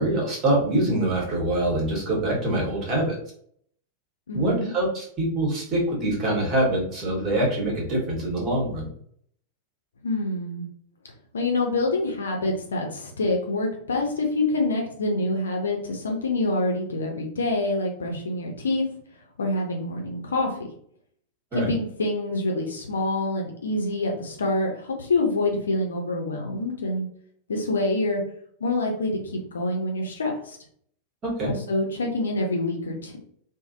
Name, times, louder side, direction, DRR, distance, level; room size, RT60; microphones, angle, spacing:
voice 1, 0.0-3.2 4.3-8.9 21.5-21.7 31.2-31.5, right 1 dB, 30° right, -3 dB, 1.3 m, -24 dB
voice 2, 4.3-4.7 10.0-10.7 11.3-18.8 19.4-20.6 21.5-27.1 27.5-28.2 28.6-30.6 31.4-33.2, left 2 dB, 70° left, 1 dB, 0.6 m, -26 dB
3.1 x 2.1 x 2.5 m, 0.63 s
figure-of-eight pair, 90°, 0 cm